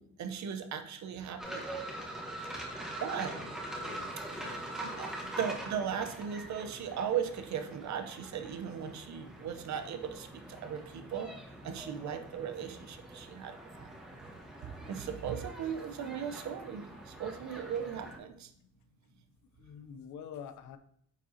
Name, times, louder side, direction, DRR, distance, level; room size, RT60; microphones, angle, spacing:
voice 1, 0.0-2.0 3.0-3.3 5.0-5.1 5.4-11.3 11.6-13.9 14.6-18.5, right 8 dB, 65° right, 7 dB, 0.8 m, -37 dB
sound 1, 1.4-18.2, right 1 dB, ahead, 1.4 m, -44 dB
voice 2, 3.8-4.6 19.6-20.8, left 8 dB, 75° left, 11 dB, 0.6 m, -47 dB
9.1 x 3.7 x 2.8 m, 0.68 s
cardioid pair, 90°, 30 cm